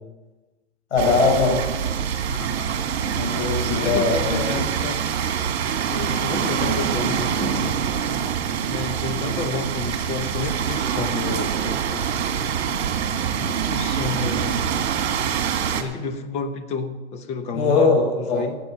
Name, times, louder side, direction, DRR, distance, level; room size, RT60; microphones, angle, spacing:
voice 1, 0.9-1.6 3.2-4.4 17.5-18.4, left 4 dB, 80° left, 1 dB, 5.1 m, -20 dB
sound 1, 1.0-15.8, right 8 dB, 65° right, 1.9 m, -25 dB
voice 2, 2.3-2.7 3.7-5.0 5.9-7.8 8.6-12.1 13.4-14.6 15.7-18.6, left 4 dB, 20° left, 8 dB, 0.9 m, -30 dB
16.5 x 8.0 x 5.9 m, 1.2 s
hypercardioid pair, 150°, 35 cm